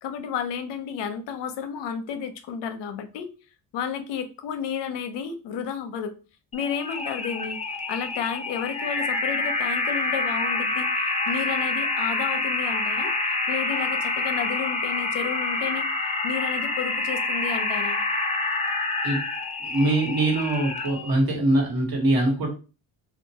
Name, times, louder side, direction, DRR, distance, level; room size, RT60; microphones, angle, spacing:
voice 1, 0.0-3.3 3.7-6.1 6.5-7.6 7.9-13.1 13.5-15.9 16.2-18.0, left 7 dB, 75° left, 8 dB, 0.6 m, -32 dB
sound 1, 6.5-21.1, left 3 dB, 15° left, 0.5 m, -27 dB
voice 2, 19.6-22.5, right 1 dB, 55° right, 0 dB, 1.2 m, -23 dB
2.4 x 2.2 x 2.7 m, 0.34 s
supercardioid pair, 65°, 43 cm